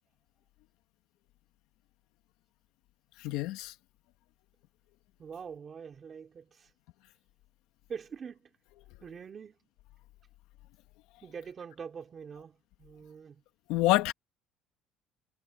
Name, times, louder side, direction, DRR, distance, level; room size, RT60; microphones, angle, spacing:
voice 1, 3.2-3.7 13.7-14.1, left 17 dB, 75° left, 1.8 m, -26 dB
voice 2, 5.2-6.7 7.9-8.5 9.0-9.5 11.2-13.4, right 6 dB, 25° right, 4.0 m, -44 dB
cardioid pair, 175°, 0 cm